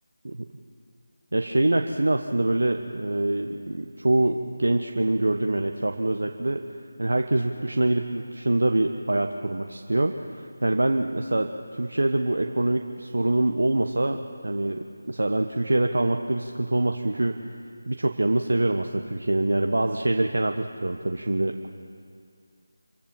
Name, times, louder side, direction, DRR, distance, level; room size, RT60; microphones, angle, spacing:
voice 1, 1.3-6.6 7.0-17.4 17.9-21.7, right 1 dB, 75° right, 5 dB, 1.1 m, -25 dB
26.0 x 15.5 x 7.6 m, 2.2 s
figure-of-eight pair, 165°, 0 cm